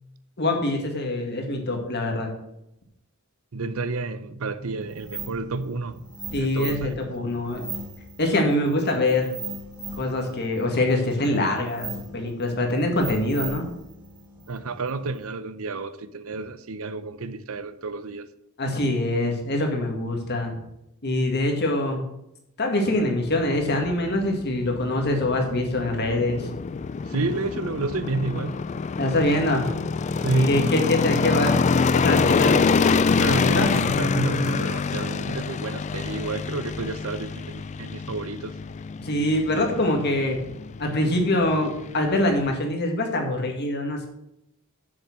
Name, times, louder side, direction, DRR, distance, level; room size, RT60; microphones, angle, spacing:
voice 1, 0.4-2.3 6.3-7.7 8.2-9.3 10.0-13.7 18.6-20.6 21.0-22.1 22.6-26.5 29.0-29.7 30.3-31.6 31.9-32.6 33.4-33.7 39.0-40.5 40.8-44.1, left 1 dB, 50° left, 2.0 m, -24 dB
voice 2, 3.5-6.9 14.5-18.3 27.0-28.9 30.2-30.7 33.2-38.6, right 3 dB, 75° right, 0.7 m, -30 dB
sound 1, 4.8-15.3, right 3 dB, 20° right, 2.0 m, -39 dB
sound 2, 23.2-42.6, left 5 dB, 35° left, 0.3 m, -26 dB
7.2 x 6.6 x 6.1 m
head